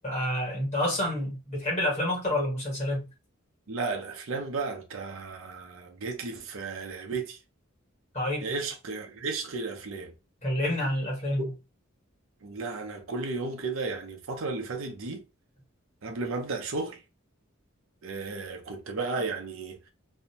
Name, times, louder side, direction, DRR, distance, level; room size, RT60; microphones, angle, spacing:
voice 1, 0.0-3.1 8.1-8.5 10.4-11.5, left 1 dB, 35° left, 1.4 m, -28 dB
voice 2, 3.7-7.4 8.4-10.1 12.4-15.2 16.0-17.0 18.0-19.9, right 3 dB, 70° right, 0.6 m, -34 dB
2.6 x 2.1 x 2.8 m
head